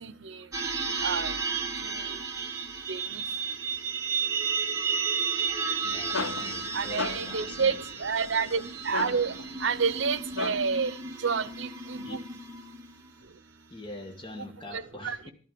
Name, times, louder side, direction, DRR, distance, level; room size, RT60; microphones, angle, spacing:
sound 1, 0.5-13.1, right 5 dB, 15° right, 1.6 m, -33 dB
voice 1, 1.0-1.3 2.9-3.2 6.7-7.8 8.0-9.3 9.6-10.9 11.2-12.2 14.7-15.2, right 5 dB, 75° right, 16 dB, 0.7 m, -29 dB
sound 2, 5.6-10.9, left 4 dB, 90° left, 0.6 m, -38 dB
voice 2, 5.8-7.8 12.0-12.2 13.7-15.3, left 1 dB, 25° left, 3 dB, 1.5 m, -43 dB
13.5 x 12.0 x 5.2 m, 0.41 s
head